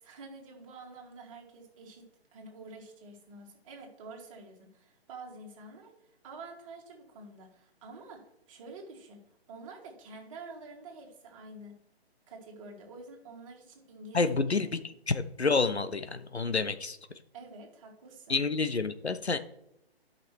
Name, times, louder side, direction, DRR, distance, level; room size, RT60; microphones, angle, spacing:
voice 1, 0.0-11.8 12.3-14.4 17.3-18.4, right 3 dB, 30° right, 0 dB, 2.3 m, -48 dB
voice 2, 14.1-14.8 15.1-17.0 18.3-19.4, left 4 dB, 85° left, 11 dB, 1.0 m, -28 dB
12.0 x 5.8 x 4.5 m, 0.77 s
figure-of-eight pair, 140°, 32 cm